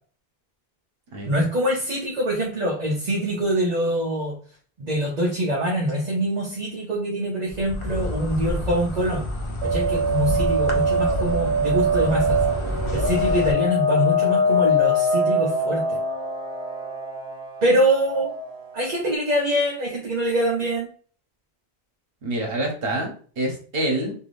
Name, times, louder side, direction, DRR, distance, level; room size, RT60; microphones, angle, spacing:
voice 1, 1.3-4.4 4.8-9.3 9.6-12.4 12.9-16.0 17.6-18.3 18.7-20.9, right 1 dB, 50° right, -2 dB, 0.7 m, -24 dB
Insect, 7.5-13.5, left 1 dB, 35° left, 0.5 m, -29 dB
sound 1, 9.6-18.9, equal, 85° right, 1.0 m, -23 dB
voice 2, 22.2-24.1, right 1 dB, 65° right, 0 dB, 1.1 m, -26 dB
3.3 x 2.6 x 2.5 m, 0.43 s
omnidirectional pair, 1.1 m